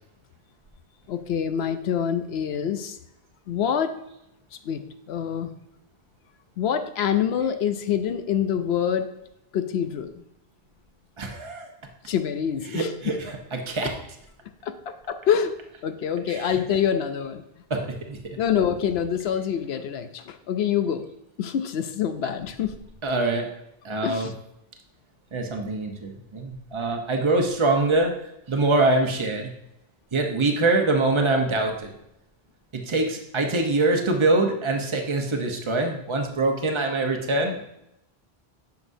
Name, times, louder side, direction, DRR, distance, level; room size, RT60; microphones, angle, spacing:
voice 1, 1.1-3.0 3.5-3.9 4.6-4.8 5.1-5.5 6.6-9.1 9.5-10.2 12.1-12.9 14.6-15.5 15.8-17.4 18.4-21.0 21.4-22.7 24.0-24.3, left 8 dB, 85° left, 9 dB, 0.9 m, -26 dB
voice 2, 11.2-11.7 12.6-13.9 16.3-16.6 17.7-18.4 22.2-22.3 23.0-23.5 23.8-24.3 25.3-28.1 28.5-29.5 30.1-31.9 32.9-37.6, right 2 dB, 30° right, 3 dB, 0.9 m, -24 dB
9.6 x 6.1 x 2.7 m, 0.82 s
omnidirectional pair, 1.1 m